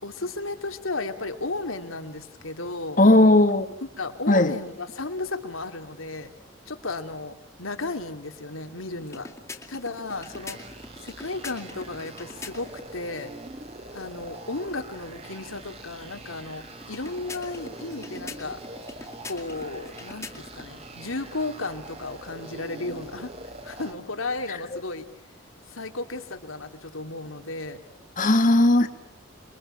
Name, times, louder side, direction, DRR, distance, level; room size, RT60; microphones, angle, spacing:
voice 1, 0.0-3.0 4.0-6.3 6.7-9.3 9.7-10.6 11.0-13.3 13.9-18.6 19.2-23.3 23.6-25.1 25.7-27.8, left 2 dB, 85° left, 2.7 m, -34 dB
voice 2, 3.0-3.7 4.3-4.5 24.5-24.6 28.2-28.9, left 2 dB, 40° left, 1.5 m, -17 dB
sound 1, 9.0-12.9 16.8-20.7, left 3 dB, 15° left, 2.1 m, -43 dB
sound 2, 10.1-23.9, right 2 dB, 30° right, 2.0 m, -43 dB
29.5 x 23.0 x 8.9 m
head